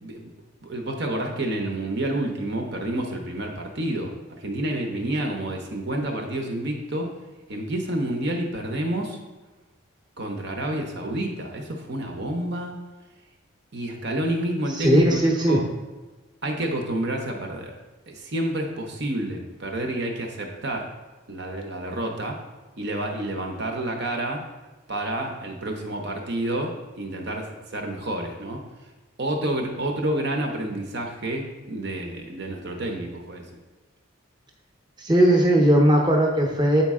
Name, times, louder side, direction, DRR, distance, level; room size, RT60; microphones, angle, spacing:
voice 1, 0.0-0.3 0.6-7.1 7.5-9.2 10.2-12.8 13.7-15.2 15.5-15.6 16.4-17.7 18.1-20.9 21.3-22.4 22.8-24.4 24.9-28.6 29.2-33.6, right 1 dB, 55° right, 2 dB, 0.8 m, -29 dB
voice 2, 14.7-15.6 35.0-36.8, right 1 dB, 20° right, 0 dB, 0.9 m, -18 dB
8.3 x 4.2 x 3.6 m, 1.2 s
head